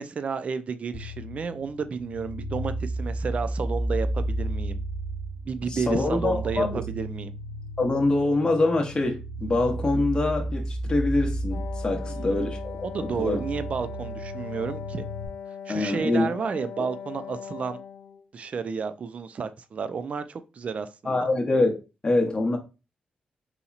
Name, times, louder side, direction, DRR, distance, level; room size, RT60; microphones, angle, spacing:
voice 1, 0.0-4.8 5.5-7.3 11.9-12.5 12.8-15.0 15.7-17.8 18.3-21.2, right 5 dB, 50° right, 0.3 m, -32 dB
sound 1, 0.9-15.3, right 1 dB, 45° left, 1.1 m, -33 dB
voice 2, 5.7-6.8 7.8-12.9 13.2-13.4 15.7-16.3 21.0-21.8 22.0-22.6, left 2 dB, 30° left, 0.8 m, -24 dB
Wind instrument woodwind instrument, 11.5-18.3, left 7 dB, 90° left, 0.3 m, -39 dB
4.0 x 2.8 x 2.3 m
cardioid pair, 90°, 3 cm